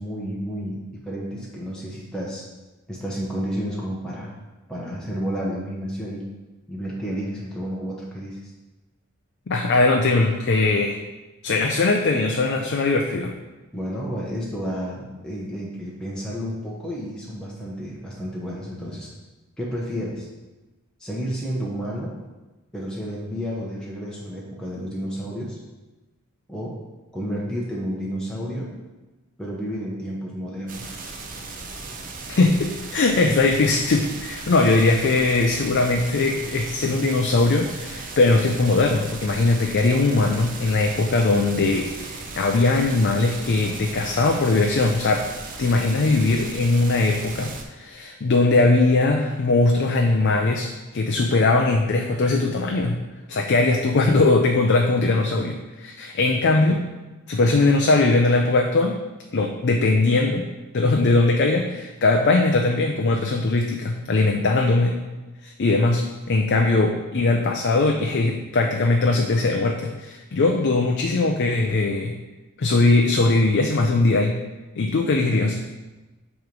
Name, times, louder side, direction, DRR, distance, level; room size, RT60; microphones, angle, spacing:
voice 1, 0.0-2.4 2.9-4.3 4.7-6.2 6.7-8.5 13.7-19.1 19.6-20.3 21.0-22.2 22.7-25.6 26.5-26.8 27.1-28.7 29.4-31.0, equal, 5° left, -6 dB, 0.8 m, -31 dB
voice 2, 9.5-11.0 11.4-13.3 32.3-45.3 45.6-53.0 53.3-56.9 57.3-59.0 59.3-60.5 60.7-65.0 65.4-72.1 72.6-74.3 74.8-75.6, left 3 dB, 50° left, 2 dB, 0.5 m, -20 dB
sound 1, 30.7-47.6, right 3 dB, 40° right, 0.7 m, -37 dB
7.8 x 3.1 x 5.2 m, 1.1 s
head